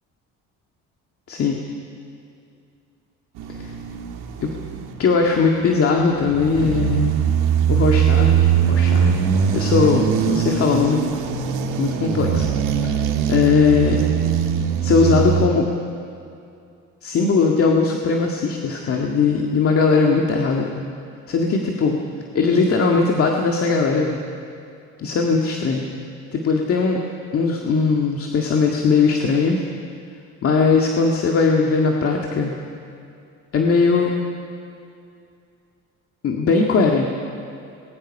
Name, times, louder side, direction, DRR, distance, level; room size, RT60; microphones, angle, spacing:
voice 1, 1.3-1.7 3.6-3.7 4.4-4.5 5.0-7.1 7.7-9.1 9.5-11.1 11.8-12.5 12.8-14.0 14.8-15.7 17.0-20.9 21.3-22.0 22.3-24.2 25.0-25.8 26.3-27.0 27.3-29.6 30.4-32.5 33.5-34.2 36.2-37.1, left 4 dB, 45° left, 0 dB, 2.0 m, -19 dB
sound 1, 3.4-5.1 5.7-15.5, right 8 dB, 85° right, 2.0 m, -21 dB
26.0 x 21.5 x 5.5 m, 2.5 s
cardioid pair, 120°, 31 cm